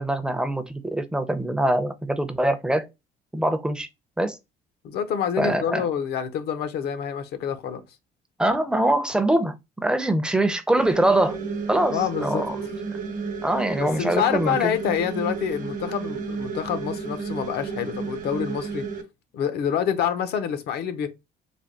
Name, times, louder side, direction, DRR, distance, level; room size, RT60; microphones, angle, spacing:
voice 1, 0.0-2.9 3.3-3.9 4.2-4.4 5.4-5.9 8.4-11.4 11.7-12.6 13.4-14.8, right 1 dB, 5° right, 0.5 m, -23 dB
voice 2, 4.8-7.8 11.9-12.4 13.8-18.9 19.3-21.1, left 8 dB, 75° left, 0.7 m, -27 dB
sound 1, 10.8-19.0, right 5 dB, 50° right, 0.9 m, -32 dB
3.4 x 2.2 x 3.7 m
cardioid pair, 110°, 17 cm